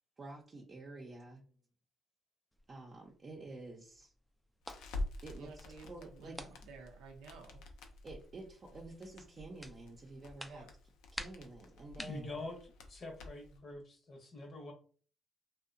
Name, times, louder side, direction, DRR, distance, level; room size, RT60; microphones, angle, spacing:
voice 1, 0.2-1.4 2.7-4.1 5.2-6.5 8.0-10.7 11.1-12.4, right 2 dB, 40° right, -3 dB, 0.6 m, -49 dB
sound 1, 2.5-13.8, equal, 5° left, 0.4 m, -54 dB
Crackle, 4.6-13.6, left 2 dB, 90° left, 0.4 m, -48 dB
voice 2, 5.4-7.6 10.5-10.7, right 4 dB, 90° right, 2 dB, 0.5 m, -53 dB
voice 3, 12.0-14.7, left 2 dB, 55° left, 3 dB, 0.8 m, -45 dB
2.7 x 2.1 x 2.5 m, 0.42 s
supercardioid pair, 70°, 0 cm